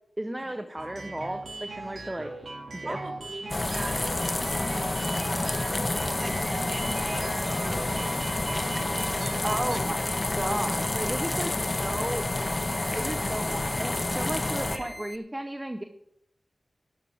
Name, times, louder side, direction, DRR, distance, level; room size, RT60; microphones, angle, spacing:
voice 1, 0.2-2.3 2.8-3.0 9.4-12.2 12.9-15.8, right 1 dB, 15° right, 7 dB, 0.9 m, -34 dB
sound 1, 0.8-9.8, right 2 dB, 80° right, 2.2 m, -39 dB
voice 2, 2.8-5.9 6.2-9.5 14.5-15.0, right 2 dB, 55° right, 0 dB, 3.5 m, -43 dB
sound 2, 3.5-14.8, left 2 dB, 35° left, 1.3 m, -29 dB
sound 3, 6.2-15.2, left 1 dB, 10° left, 0.8 m, -43 dB
17.0 x 12.0 x 3.6 m, 0.76 s
wide cardioid pair, 65°, 0 cm